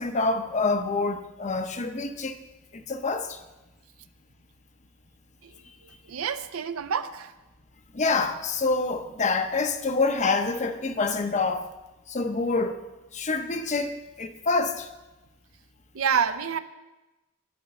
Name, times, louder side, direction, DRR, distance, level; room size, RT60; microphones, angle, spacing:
voice 1, 0.0-2.4 2.7-3.4 7.9-11.7 12.1-12.8 13.1-14.9, left 3 dB, 35° left, 8 dB, 0.7 m, -26 dB
voice 2, 5.8-7.3 15.9-16.6, right 7 dB, 70° right, 11 dB, 0.6 m, -28 dB
11.0 x 5.6 x 6.9 m, 1.1 s
head